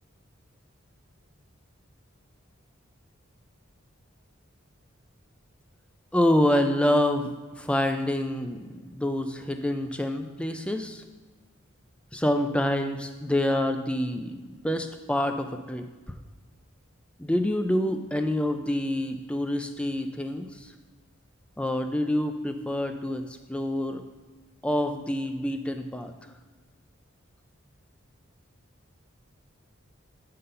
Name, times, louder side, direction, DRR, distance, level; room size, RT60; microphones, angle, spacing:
voice 1, 6.1-7.3 7.6-11.0 12.1-15.8 17.2-20.5 21.6-23.2 23.5-24.0 24.6-26.1, left 1 dB, 5° left, 7 dB, 0.3 m, -27 dB
7.9 x 3.9 x 5.4 m, 1.4 s
head